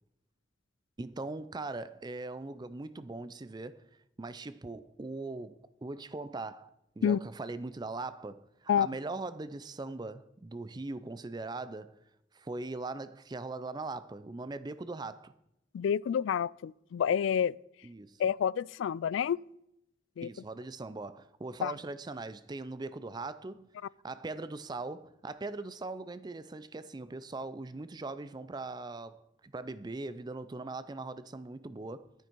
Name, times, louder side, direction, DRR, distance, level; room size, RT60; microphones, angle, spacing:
voice 1, 1.0-3.8 4.2-12.0 12.3-15.3 17.8-18.2 20.2-23.7 24.0-32.1, right 3 dB, 20° right, 0.4 m, -40 dB
voice 2, 15.7-17.5 18.2-19.4 20.2-20.3 21.6-21.7, left 8 dB, 85° left, 0.3 m, -28 dB
11.0 x 9.9 x 4.5 m
head